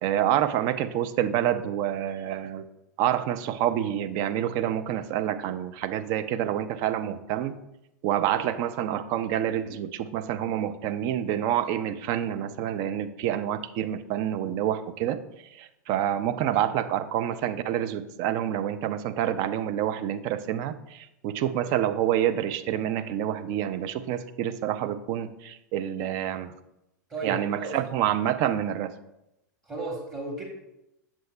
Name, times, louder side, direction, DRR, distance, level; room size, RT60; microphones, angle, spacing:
voice 1, 0.0-2.7 3.0-7.6 8.0-15.2 15.6-26.5 27.2-28.9, right 11 dB, 40° right, 11 dB, 0.4 m, -27 dB
voice 2, 27.1-27.8 29.6-30.4, right 3 dB, 20° right, -1 dB, 1.1 m, -34 dB
7.5 x 7.1 x 2.2 m, 0.89 s
figure-of-eight pair, 95°, 10 cm